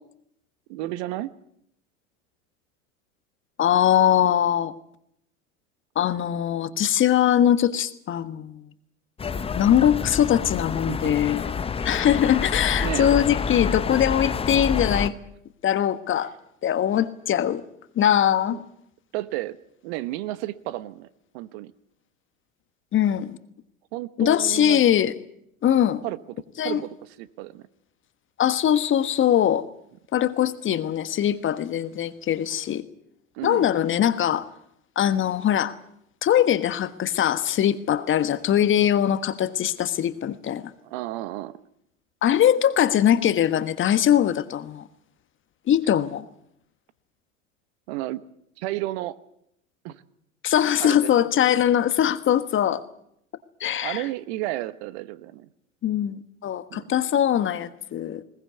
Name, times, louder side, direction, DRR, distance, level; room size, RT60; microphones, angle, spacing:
voice 1, 0.7-1.3 10.9-11.2 12.8-13.1 18.5-18.6 19.1-19.6 19.8-21.1 21.3-21.7 23.9-24.8 26.0-26.2 26.6-27.7 33.3-33.7 40.8-41.6 47.9-48.2 48.6-49.2 49.8-50.0 50.8-51.3 53.6-55.5 56.7-56.9, right 16 dB, 55° right, 15 dB, 1.2 m, -32 dB
voice 2, 3.6-4.7 5.9-8.7 9.6-11.5 11.8-15.1 15.6-16.3 16.6-17.6 17.9-18.6 22.9-23.4 24.2-25.1 25.6-26.0 26.6-26.8 28.4-29.7 30.1-32.8 33.4-34.5 34.9-35.7 36.2-40.7 42.2-44.8 45.7-46.2 50.4-52.8 53.6-54.1 55.8-58.2, left 10 dB, 30° left, 13 dB, 1.4 m, -21 dB
sound 1, 9.2-15.1, left 5 dB, 15° left, 0.9 m, -28 dB
21.0 x 19.0 x 8.3 m, 0.74 s
hypercardioid pair, 85°, 40 cm